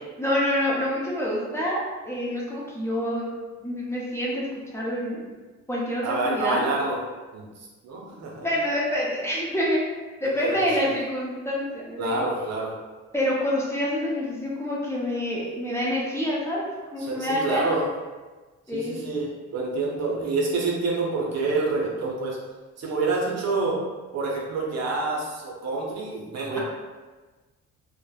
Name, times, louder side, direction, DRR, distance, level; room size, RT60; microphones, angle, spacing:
voice 1, 0.2-3.3 3.6-5.2 5.7-6.6 8.4-9.8 10.2-12.2 13.1-16.7 16.9-17.7 18.7-19.0, left 1 dB, 10° left, -6 dB, 0.7 m, -27 dB
voice 2, 6.0-7.0 7.3-7.4 7.8-8.5 10.4-10.9 12.0-12.7 17.0-17.9 18.7-22.4 22.8-23.8 24.1-26.6, right 3 dB, 60° right, -3 dB, 0.7 m, -27 dB
3.0 x 2.1 x 2.3 m, 1.3 s
cardioid pair, 90°, 30 cm